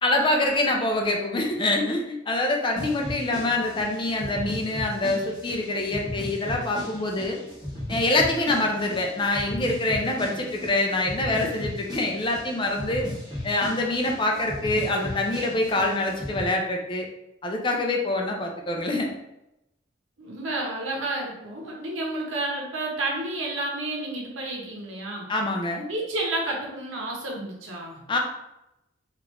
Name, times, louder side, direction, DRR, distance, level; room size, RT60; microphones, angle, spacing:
voice 1, 0.0-7.4 7.9-13.1 13.4-17.1 17.4-19.1 25.3-25.9 28.1-28.2, left 2 dB, 25° left, 1 dB, 0.4 m, -25 dB
sound 1, 2.8-16.5, left 1 dB, 20° right, 1.5 m, -36 dB
voice 2, 20.2-25.3 25.9-28.0, right 2 dB, 85° right, -1 dB, 0.8 m, -30 dB
3.3 x 2.4 x 3.0 m, 0.88 s
head